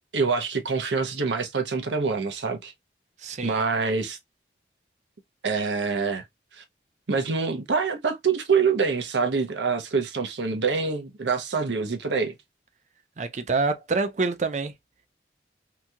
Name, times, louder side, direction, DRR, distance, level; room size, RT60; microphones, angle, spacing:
voice 1, 0.1-2.7 3.4-4.2 5.4-6.2 6.5-6.6 7.1-12.3, right 5 dB, 80° right, 0.7 m, -25 dB
voice 2, 3.2-3.6 13.2-14.7, right 3 dB, 40° right, 0.4 m, -26 dB
2.9 x 2.7 x 2.3 m
head